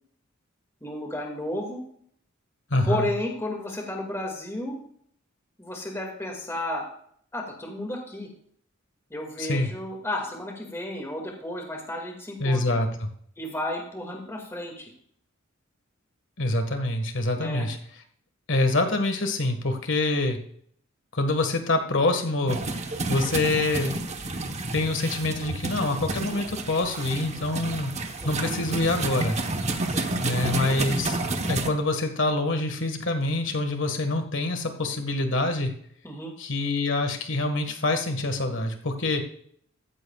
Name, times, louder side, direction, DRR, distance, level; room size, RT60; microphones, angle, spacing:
voice 1, 0.8-1.8 2.8-4.8 5.6-6.9 7.3-8.3 9.1-12.6 13.4-14.9 17.4-17.7 28.2-28.5 29.9-30.1 36.0-36.3, left 1 dB, 15° left, 1 dB, 2.2 m, -32 dB
voice 2, 2.7-3.1 9.4-9.7 12.4-13.1 16.4-17.8 18.5-20.4 21.1-22.6 23.1-24.0 24.7-27.9 28.3-29.4 30.2-31.2 31.5-35.7 36.4-39.2, left 2 dB, 65° left, 6 dB, 1.7 m, -25 dB
sound 1, 22.5-31.7, right 2 dB, 35° right, 1.1 m, -30 dB
14.5 x 14.0 x 2.4 m, 0.63 s
head